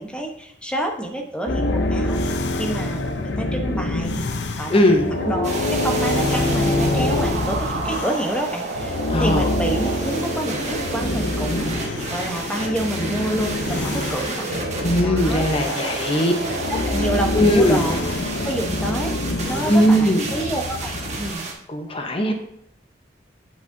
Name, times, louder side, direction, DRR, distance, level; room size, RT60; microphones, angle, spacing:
voice 1, 0.0-2.2 2.6-14.7 15.0-15.5 16.1-19.2 19.4-21.4, right 1 dB, 5° left, 3 dB, 0.9 m, -28 dB
sound 1, 1.5-8.5 8.8-21.3, left 2 dB, 70° left, 0.7 m, -26 dB
voice 2, 4.7-5.0 9.1-9.4 14.8-16.3 17.3-17.8 19.7-20.2 21.7-22.3, equal, 30° left, 4 dB, 0.8 m, -18 dB
sound 2, 5.2-16.7, right 2 dB, 65° right, 1.1 m, -31 dB
sound 3, 5.4-21.5, right 3 dB, 40° right, 1.4 m, -33 dB
7.9 x 7.8 x 2.7 m, 0.73 s
head